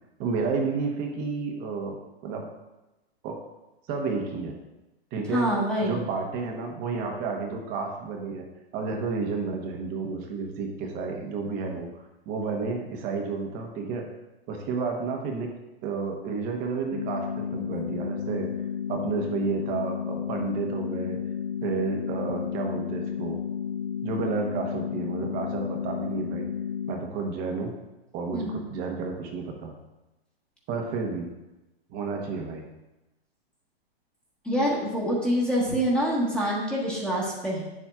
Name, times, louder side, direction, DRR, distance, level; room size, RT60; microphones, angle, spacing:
voice 1, 0.2-2.5 3.2-3.4 3.9-4.6 5.1-5.5 5.8-8.4 8.7-11.9 12.3-14.1 14.5-15.5 15.8-18.5 18.9-21.2 21.6-23.4 24.0-26.5 26.9-27.7 28.1-29.7 30.7-31.3 31.9-32.7, right 4 dB, 30° right, 2 dB, 1.0 m, -31 dB
voice 2, 5.3-6.0 28.3-28.6 34.4-37.6, equal, 5° left, -5 dB, 1.3 m, -26 dB
sound 1, 16.9-26.9, left 8 dB, 70° left, 1.8 m, -32 dB
9.1 x 7.3 x 2.4 m, 1.0 s
hypercardioid pair, 145°, 32 cm